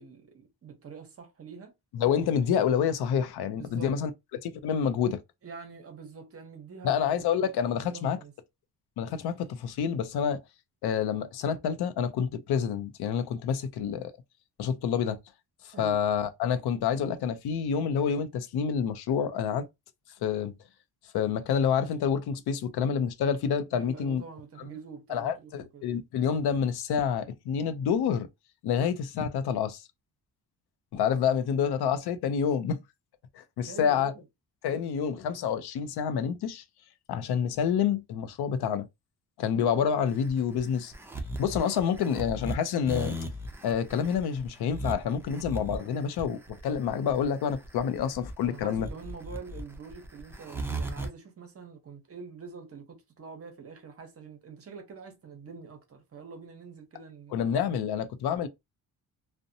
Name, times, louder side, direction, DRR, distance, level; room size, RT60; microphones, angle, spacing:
voice 1, 0.0-1.7 3.5-4.0 5.4-7.5 7.8-8.3 15.7-16.0 23.7-25.9 31.3-31.4 33.7-34.2 34.7-35.3 48.4-57.4, right 5 dB, 35° right, 0.7 m, -45 dB
voice 2, 1.9-4.1 4.4-5.2 6.8-8.2 9.0-10.4 10.8-14.1 14.6-15.2 15.6-19.7 20.2-20.5 21.1-24.2 24.6-24.7 25.1-28.3 28.6-29.8 30.9-32.8 33.3-34.1 34.6-36.6 37.1-38.9 39.4-40.9 41.4-43.2 43.6-48.9 57.3-58.5, left 7 dB, 75° left, 0.5 m, -28 dB
sound 1, 40.1-51.1, right 1 dB, 5° right, 0.4 m, -37 dB
2.6 x 2.1 x 2.6 m
cardioid pair, 140°, 39 cm